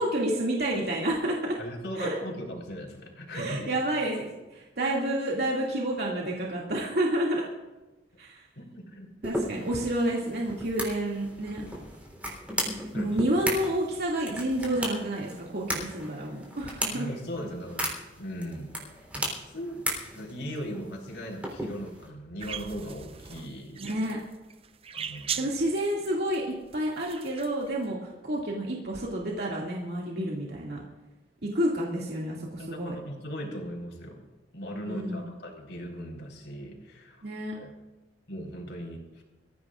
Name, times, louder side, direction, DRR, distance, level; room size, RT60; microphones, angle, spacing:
voice 1, 0.0-1.6 2.0-2.2 3.3-7.4 8.2-8.4 9.2-11.6 13.0-17.1 23.8-24.2 25.4-26.4 26.7-28.0 28.2-30.8 31.4-33.0 34.8-35.3 37.2-37.5, right 1 dB, 65° right, -3 dB, 2.4 m, -29 dB
voice 2, 1.6-3.7 8.6-9.1 12.9-13.2 16.9-17.9 18.2-18.7 19.5-19.8 20.1-24.0 24.9-25.5 32.6-34.3 34.5-37.7 38.3-39.2, equal, 75° left, 0 dB, 4.2 m, -38 dB
sound 1, 9.2-22.1, equal, 10° right, 3.7 m, -36 dB
sound 2, 22.4-27.8, right 8 dB, 35° right, 0.5 m, -39 dB
24.5 x 15.0 x 2.5 m, 1.1 s
head